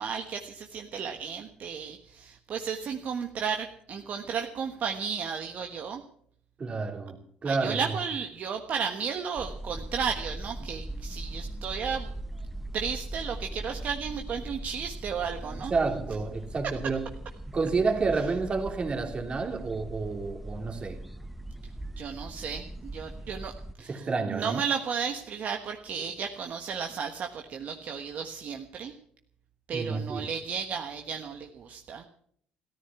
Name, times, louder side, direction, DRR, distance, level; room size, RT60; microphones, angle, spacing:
voice 1, 0.0-6.0 7.4-12.1 12.7-15.7 22.0-23.5 23.8-28.9 29.7-32.0, right 6 dB, 55° right, 1.4 m, -34 dB
voice 2, 6.6-7.9 15.5-17.1 17.5-21.0 23.8-24.6 29.7-30.3, right 4 dB, 35° right, 2.9 m, -30 dB
sound 1, 9.4-23.8, right 1 dB, 5° right, 0.9 m, -40 dB
14.0 x 13.5 x 7.1 m
cardioid pair, 100°, 3 cm